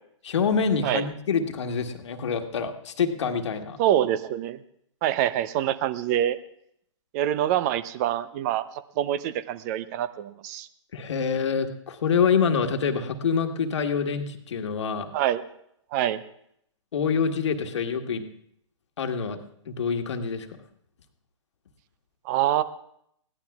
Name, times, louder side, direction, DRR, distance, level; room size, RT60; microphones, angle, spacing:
voice 1, 0.2-3.8 10.9-15.1 16.9-18.2 19.0-19.4 19.7-20.5, left 6 dB, 65° left, 5 dB, 1.5 m, -26 dB
voice 2, 3.8-4.6 5.0-6.4 7.1-8.7 9.0-10.7 15.1-15.4 15.9-16.2 22.2-22.6, right 12 dB, 30° right, 15 dB, 0.7 m, -25 dB
21.0 x 16.0 x 2.4 m, 0.71 s
hypercardioid pair, 130°, 16 cm